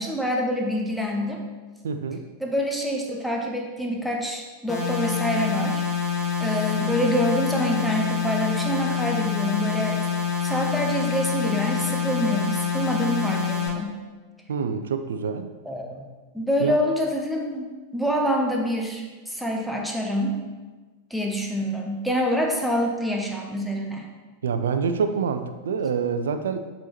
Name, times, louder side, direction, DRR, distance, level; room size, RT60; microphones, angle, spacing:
voice 1, 0.0-1.4 2.4-5.8 6.4-10.0 10.4-14.0 15.7-16.0 16.3-20.4 21.1-24.1, equal, ahead, 0 dB, 0.9 m, -26 dB
voice 2, 1.8-2.2 14.5-15.5 16.6-16.8 24.4-26.6, right 6 dB, 65° right, 9 dB, 0.4 m, -26 dB
sound 1, 4.7-13.7, left 6 dB, 20° left, 1.2 m, -26 dB
7.5 x 4.3 x 3.0 m, 1.3 s
figure-of-eight pair, 90°, 0 cm